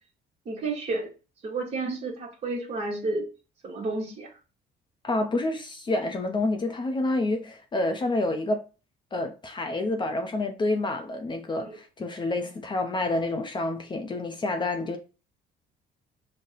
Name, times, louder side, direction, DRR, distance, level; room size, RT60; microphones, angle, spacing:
voice 1, 0.5-1.1 1.4-3.3 3.6-4.3 11.6-11.8, right 3 dB, 35° right, 1.0 m, -31 dB
voice 2, 5.0-8.6 9.1-15.0, left 2 dB, 25° left, 0.5 m, -28 dB
3.9 x 2.1 x 3.8 m
cardioid pair, 110°, 17 cm